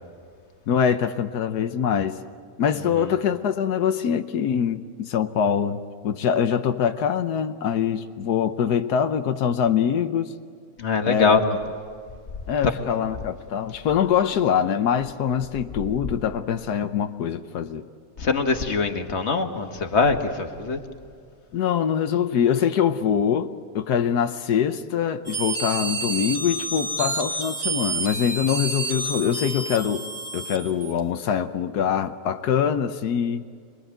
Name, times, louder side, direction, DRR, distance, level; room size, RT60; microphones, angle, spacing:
voice 1, 0.7-2.2 2.6-10.3 11.0-11.4 12.5-17.9 21.5-30.1 30.3-33.5, left 8 dB, 90° left, 8 dB, 1.4 m, -24 dB
voice 2, 10.8-11.4 18.2-20.8, left 4 dB, 45° left, 5 dB, 1.9 m, -23 dB
sound 1, 25.3-31.0, right 2 dB, 25° right, 2.3 m, -29 dB
26.5 x 21.5 x 9.2 m, 2.1 s
omnidirectional pair, 1.7 m